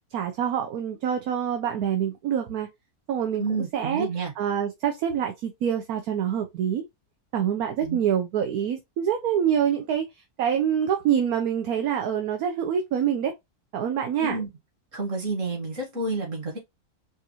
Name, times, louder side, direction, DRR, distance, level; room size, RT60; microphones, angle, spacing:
voice 1, 0.1-2.7 3.1-3.4 3.7-4.1 4.4-6.8 7.3-10.0 10.4-13.3 13.7-14.4, right 8 dB, 75° right, 1.2 m, -26 dB
voice 2, 3.4-4.3 7.8-8.0 14.2-14.5 14.9-16.6, right 3 dB, 55° right, 2.0 m, -30 dB
5.1 x 2.6 x 2.9 m
omnidirectional pair, 1.6 m